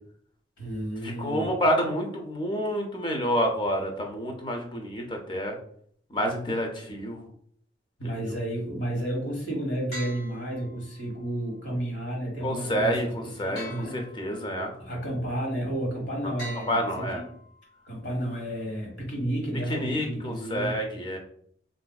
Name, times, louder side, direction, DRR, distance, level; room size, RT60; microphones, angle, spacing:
voice 1, 0.6-1.5 8.0-14.0 14.8-17.2 17.8-20.8, right 1 dB, 80° left, -2 dB, 1.3 m, -32 dB
voice 2, 1.2-5.5 6.1-7.3 8.0-8.1 12.4-14.7 16.7-17.2 19.7-21.2, equal, 25° left, 3 dB, 0.5 m, -28 dB
sound 1, 9.9-11.2 13.5-14.6 16.4-17.6, equal, 60° left, 1.3 m, -43 dB
3.9 x 2.6 x 2.3 m, 0.62 s
head